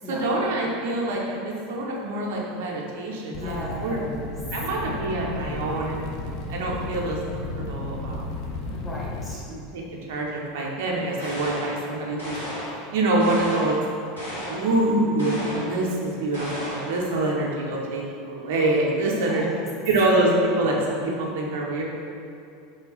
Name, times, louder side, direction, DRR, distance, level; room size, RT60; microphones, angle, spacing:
voice 1, 0.1-4.0 4.5-6.0 6.5-7.2 7.6-8.2 9.5-9.8 10.1-12.4 12.9-13.8 14.5-19.4 19.8-21.8, right 2 dB, 65° right, -3 dB, 0.5 m, -25 dB
sound 1, 3.3-9.3, left 2 dB, 55° left, 0.4 m, -33 dB
voice 2, 3.3-4.4 8.7-9.4 19.1-19.5, left 1 dB, 15° left, -5 dB, 0.9 m, -35 dB
sound 2, 11.2-11.8 12.2-12.8 13.2-13.8 14.2-14.7 15.2-15.8 16.3-17.0, equal, 85° left, 0.9 m, -34 dB
3.3 x 2.3 x 3.8 m, 2.6 s
hypercardioid pair, 85°, 0 cm